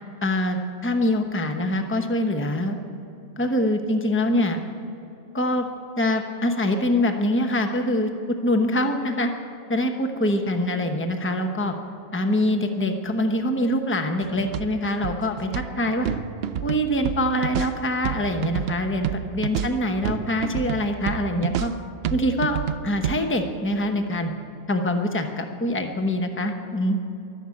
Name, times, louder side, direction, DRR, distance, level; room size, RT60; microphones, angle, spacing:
voice 1, 0.2-2.8 3.4-4.6 5.3-5.7 6.0-9.3 9.7-11.7 12.1-16.1 16.6-21.7 22.1-24.3 24.7-27.0, left 1 dB, 10° left, 5 dB, 0.9 m, -24 dB
sound 1, 14.2-23.2, right 9 dB, 65° right, 0.7 m, -30 dB
14.0 x 12.0 x 8.5 m, 2.9 s
omnidirectional pair, 1.2 m